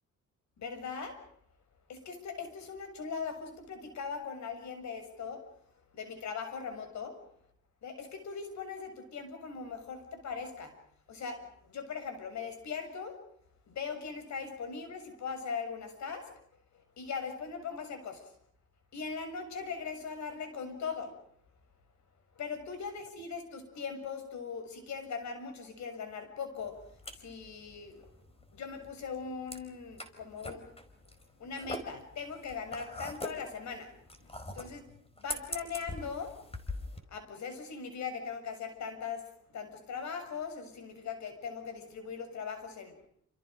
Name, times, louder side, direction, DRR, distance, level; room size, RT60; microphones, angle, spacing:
voice 1, 0.6-1.2 1.9-5.4 5.9-7.2 7.8-10.8 11.1-13.2 13.7-16.3 17.0-18.3 18.9-21.1 22.4-26.8 27.1-28.1 28.5-30.7 31.4-33.9 34.2-34.3 34.6-34.8 35.2-36.4 36.7-43.1, left 5 dB, 65° left, 8 dB, 7.1 m, -40 dB
sound 1, 26.6-37.0, left 2 dB, 20° left, 4.7 m, -43 dB
28.5 x 28.5 x 5.3 m, 0.66 s
cardioid pair, 90°, 30 cm